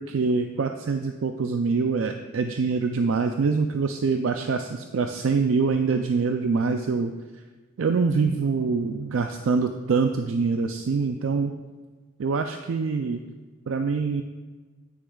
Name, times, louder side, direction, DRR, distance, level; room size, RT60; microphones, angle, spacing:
voice 1, 0.0-7.1 7.8-11.5 12.2-13.2 13.7-14.2, right 4 dB, 75° right, 6 dB, 0.4 m, -25 dB
9.8 x 9.5 x 2.3 m, 1.3 s
head